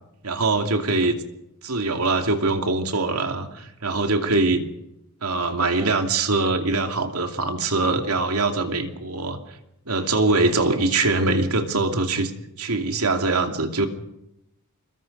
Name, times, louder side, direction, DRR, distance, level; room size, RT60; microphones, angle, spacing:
voice 1, 0.2-1.2 1.6-4.6 5.2-9.4 9.9-12.3 12.6-13.9, right 3 dB, 85° right, 5 dB, 2.6 m, -23 dB
26.5 x 21.0 x 5.5 m, 0.85 s
head